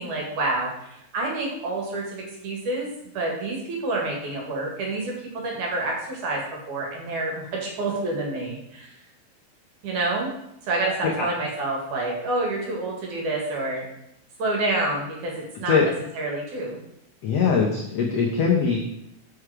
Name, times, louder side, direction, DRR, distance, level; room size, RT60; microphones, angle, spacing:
voice 1, 0.0-8.9 9.8-10.3 10.6-13.9 14.4-15.8 16.2-16.8, right 2 dB, 60° right, -1 dB, 2.9 m, -28 dB
voice 2, 17.2-18.8, left 6 dB, 80° left, -1 dB, 1.4 m, -21 dB
6.7 x 6.4 x 4.8 m, 0.79 s
omnidirectional pair, 4.2 m